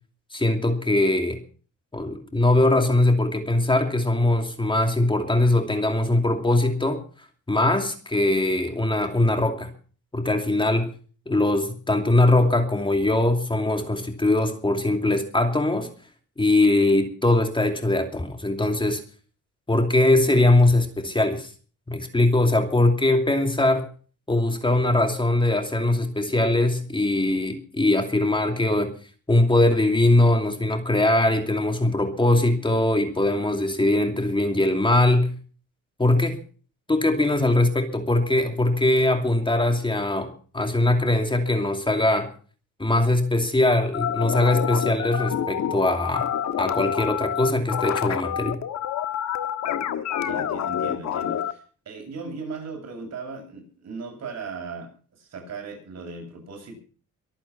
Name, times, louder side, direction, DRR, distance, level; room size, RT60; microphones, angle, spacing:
voice 1, 0.3-1.4 1.9-7.0 7.5-9.7 10.1-10.9 11.3-15.9 16.4-19.0 19.7-21.5 21.9-23.9 24.3-28.9 29.3-35.3 36.0-36.4 36.9-42.3 42.8-46.3 46.6-48.6, left 2 dB, 15° left, 2.6 m, -21 dB
sound 1, 43.9-51.5, left 9 dB, 65° left, 1.6 m, -27 dB
voice 2, 50.2-56.8, right 4 dB, 60° right, 8.0 m, -37 dB
24.0 x 8.8 x 5.7 m
cardioid pair, 90°, 30 cm